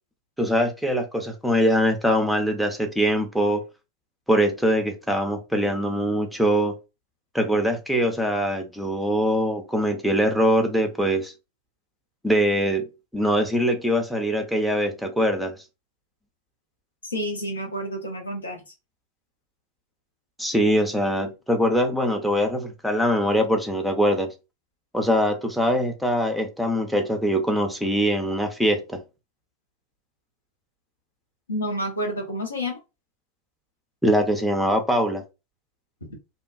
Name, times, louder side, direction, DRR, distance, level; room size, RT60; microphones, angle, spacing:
voice 1, 0.4-3.6 4.3-6.7 7.3-11.3 12.2-12.9 13.1-15.6 20.4-24.3 24.9-29.0 34.0-35.2, equal, ahead, 0.5 m, -22 dB
voice 2, 17.0-18.6 31.5-32.8, equal, 75° left, 0.8 m, -29 dB
2.7 x 2.2 x 2.4 m
figure-of-eight pair, 90°, 0 cm